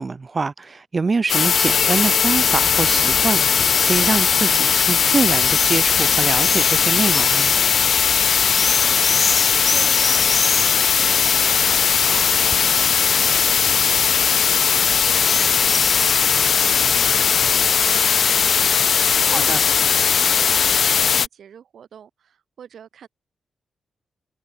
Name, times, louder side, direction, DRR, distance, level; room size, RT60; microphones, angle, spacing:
voice 1, 0.0-7.5 19.1-19.6, right 4 dB, 40° right, 0.6 m, -25 dB
sound 1, 1.3-21.3, left 7 dB, 65° left, 0.7 m, -18 dB
sound 2, 2.3-17.7, left 3 dB, 35° left, 1.5 m, -31 dB
voice 2, 8.6-23.1, right 8 dB, 80° right, 5.4 m, -44 dB
cardioid pair, 80°, 0 cm